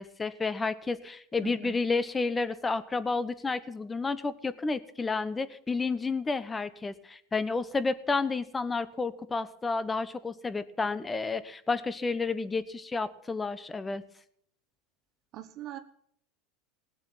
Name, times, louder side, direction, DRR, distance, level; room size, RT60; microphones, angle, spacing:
voice 1, 0.0-14.0, left 4 dB, 15° left, 14 dB, 0.9 m, -31 dB
voice 2, 1.4-1.8 15.3-15.8, right 12 dB, 40° right, 7 dB, 1.1 m, -41 dB
18.5 x 7.4 x 9.1 m, 0.67 s
supercardioid pair, 150°, 0 cm